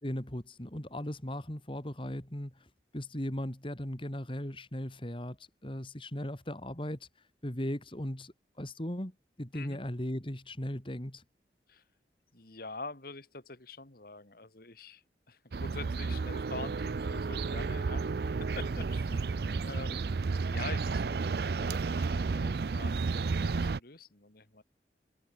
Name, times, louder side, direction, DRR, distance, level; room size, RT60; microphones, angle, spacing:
voice 1, 0.0-2.7 2.9-5.4 5.6-7.1 7.4-11.2 19.1-19.2, equal, 30° left, 2.7 m, -37 dB
voice 2, 12.3-18.0 18.6-19.1 19.7-24.6, left 3 dB, 55° left, 2.2 m, -46 dB
sound 1, 15.5-23.8, right 4 dB, 60° right, 0.5 m, -32 dB
head